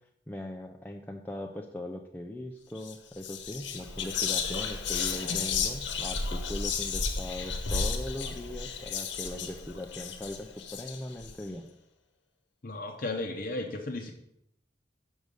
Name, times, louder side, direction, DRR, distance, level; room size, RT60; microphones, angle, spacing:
voice 1, 0.3-11.7, left 1 dB, 10° left, 2 dB, 0.4 m, -40 dB
Whispering, 2.8-2.9 3.2-11.3, left 5 dB, 80° left, 1.0 m, -33 dB
voice 2, 12.6-14.1, left 2 dB, 50° left, 2 dB, 0.7 m, -34 dB
6.3 x 5.3 x 6.4 m, 0.79 s
head